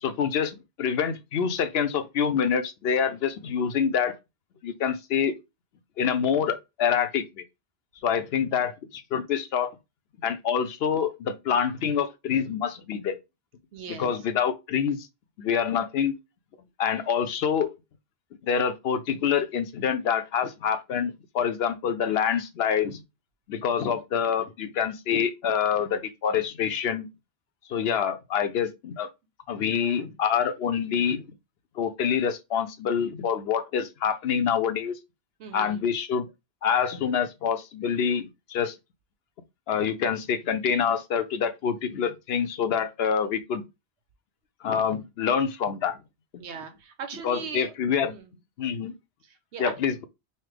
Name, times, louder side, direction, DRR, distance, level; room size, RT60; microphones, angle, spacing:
voice 1, 0.0-4.1 4.6-5.3 6.0-7.4 8.0-9.8 10.2-13.2 14.0-15.1 15.4-16.2 16.8-17.7 18.4-23.0 23.5-27.1 27.7-29.1 29.5-31.3 31.8-34.9 35.5-36.3 36.6-38.7 39.7-43.6 44.6-46.0 47.2-48.1 48.6-48.9 49.6-50.0, left 7 dB, 70° left, 0.8 m, -26 dB
voice 2, 13.7-14.3 35.4-35.9 46.4-47.7 48.0-48.3 49.3-49.7, right 6 dB, 85° right, 1.1 m, -39 dB
5.6 x 2.0 x 3.2 m
omnidirectional pair, 1.1 m